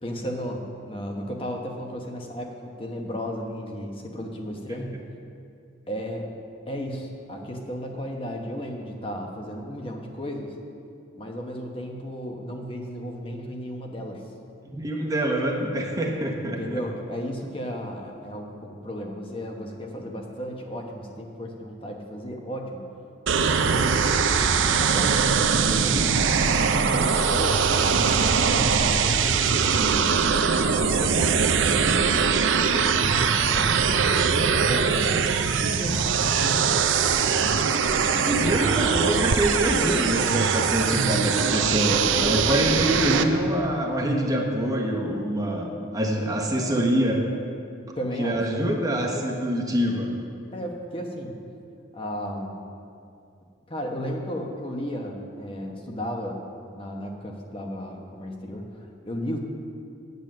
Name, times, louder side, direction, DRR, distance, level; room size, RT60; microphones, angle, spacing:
voice 1, 0.0-5.0 5.9-6.4 6.7-10.5 11.1-14.2 16.4-22.8 23.6-24.0 24.4-26.2 26.9-29.9 30.6-35.0 35.7-36.9 37.4-38.7 42.6-42.7 43.0-43.3 48.0-48.4 48.8-49.1 50.5-51.4 51.9-52.6 53.7-56.4 56.7-59.4, equal, 30° left, 2 dB, 1.0 m, -34 dB
voice 2, 14.6-16.8 38.2-47.2 48.2-50.1, right 1 dB, 20° right, 0 dB, 0.9 m, -25 dB
sound 1, 23.3-43.2, right 6 dB, 80° right, 0.6 m, -22 dB
9.0 x 8.2 x 6.5 m, 2.5 s
head